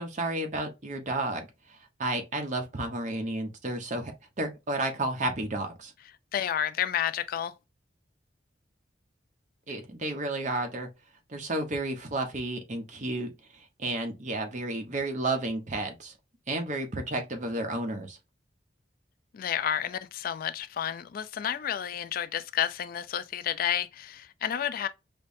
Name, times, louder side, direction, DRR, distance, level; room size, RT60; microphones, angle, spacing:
voice 1, 0.0-5.9 9.7-10.9 11.3-16.1 16.5-18.2, right 2 dB, 45° right, 0.9 m, -32 dB
voice 2, 6.3-7.5 19.3-24.9, left 9 dB, 55° left, 0.3 m, -30 dB
5.2 x 2.1 x 2.6 m
head